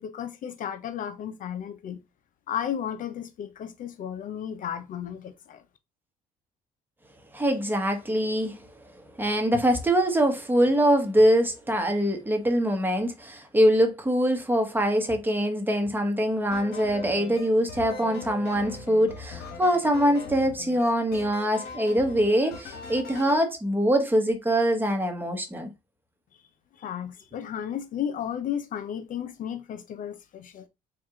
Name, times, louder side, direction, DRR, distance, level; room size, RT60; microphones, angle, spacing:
voice 1, 0.0-2.0 2.5-5.6 26.8-30.6, left 9 dB, 50° left, 0.5 m, -34 dB
voice 2, 7.3-8.6 9.2-25.7, equal, 10° right, 1.0 m, -23 dB
sound 1, 16.5-23.4, left 4 dB, 70° left, 1.3 m, -41 dB
4.5 x 2.4 x 3.7 m
cardioid pair, 110°, 17 cm